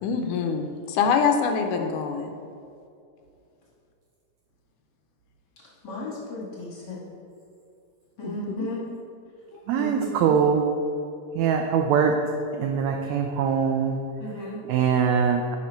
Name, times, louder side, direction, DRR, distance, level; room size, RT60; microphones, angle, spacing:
voice 1, 0.0-2.3 8.2-8.7 9.5-9.6, left 6 dB, 80° left, 5 dB, 2.1 m, -25 dB
voice 2, 5.8-7.0 8.2-8.9 9.7-10.4 14.2-14.6, left 1 dB, 45° left, -5 dB, 1.6 m, -34 dB
voice 3, 9.7-10.6 11.3-12.1 12.5-14.0 14.6-15.6, right 7 dB, 85° right, 3 dB, 1.6 m, -22 dB
11.0 x 5.7 x 4.5 m, 2.5 s
omnidirectional pair, 3.8 m